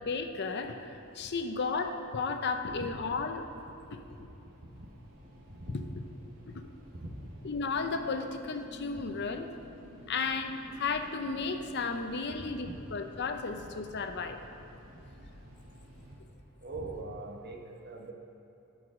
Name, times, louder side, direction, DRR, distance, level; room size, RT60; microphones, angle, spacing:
voice 1, 0.1-3.4 3.9-4.3 6.5-6.6 7.4-9.5 10.1-14.4, left 4 dB, 55° left, 6 dB, 0.6 m, -34 dB
sound 1, 0.6-16.2, equal, 85° right, 2.4 m, -55 dB
voice 2, 5.5-6.0 7.0-7.1 12.3-12.8 13.5-13.6 16.6-18.1, right 2 dB, 50° right, 1 dB, 1.1 m, -42 dB
sound 2, 7.4-12.9, left 2 dB, 10° left, 1.7 m, -51 dB
12.5 x 4.8 x 6.2 m, 3.0 s
head